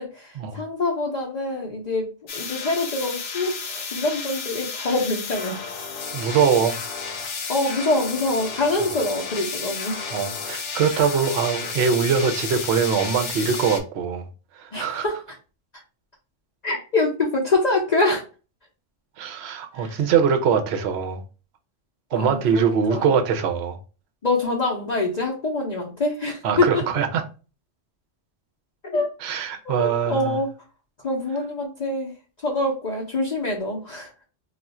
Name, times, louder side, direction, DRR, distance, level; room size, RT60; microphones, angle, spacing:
voice 1, 0.0-5.6 7.5-10.1 14.7-15.2 16.6-18.2 19.7-20.0 22.1-23.1 24.2-26.8 28.8-29.1 29.6-30.5 31.0-32.1 32.4-34.1, left 2 dB, 45° left, 0.6 m, -25 dB
sound 1, 2.3-13.8, left 5 dB, 70° left, 1.0 m, -32 dB
voice 2, 6.1-6.8 10.1-14.2 14.6-15.0 19.2-21.2 22.1-23.8 26.4-27.2 29.2-30.4, right 6 dB, 65° right, 0.8 m, -22 dB
2.4 x 2.3 x 4.0 m
omnidirectional pair, 1.3 m